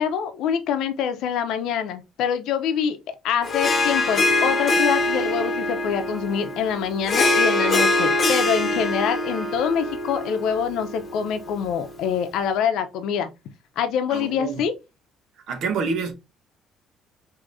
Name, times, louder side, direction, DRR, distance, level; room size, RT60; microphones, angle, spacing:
voice 1, 0.0-3.0 3.2-13.3 13.8-14.7, left 7 dB, 75° left, 0.7 m, -25 dB
Harp, 3.4-12.1, left 2 dB, 35° left, 0.9 m, -24 dB
voice 2, 14.1-14.6 15.5-16.1, right 5 dB, 65° right, 1.0 m, -27 dB
4.8 x 2.8 x 2.6 m
cardioid pair, 125°, 0 cm